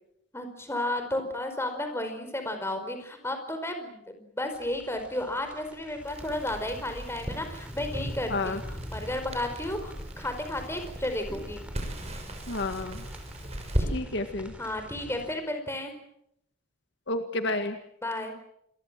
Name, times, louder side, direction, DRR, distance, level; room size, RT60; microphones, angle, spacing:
voice 1, 0.3-11.6 13.8-14.0 14.6-16.0 18.0-18.3, left 1 dB, 15° left, 6 dB, 4.8 m, -33 dB
sound 1, 4.5-15.3, equal, 5° right, 4.5 m, -43 dB
Crackle, 6.0-13.9, equal, 30° right, 6.4 m, -37 dB
voice 2, 8.3-8.6 12.5-13.0 13.9-14.5 17.1-17.8, left 2 dB, 60° left, 8 dB, 1.8 m, -30 dB
28.5 x 22.5 x 7.6 m, 0.76 s
head